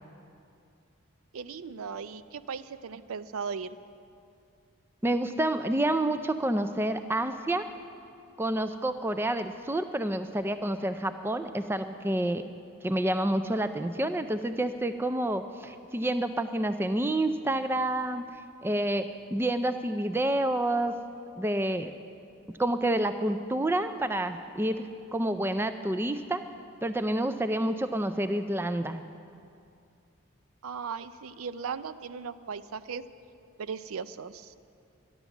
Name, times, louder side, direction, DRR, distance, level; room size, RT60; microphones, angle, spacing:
voice 1, 1.3-3.7 30.6-33.0 33.6-34.5, right 6 dB, 80° right, 14 dB, 0.5 m, -37 dB
voice 2, 5.0-7.7 8.4-12.4 12.8-18.3 18.6-21.0 21.4-21.9 22.6-26.4 26.8-29.0, right 1 dB, 10° right, 9 dB, 0.3 m, -28 dB
12.5 x 11.0 x 7.1 m, 2.5 s
head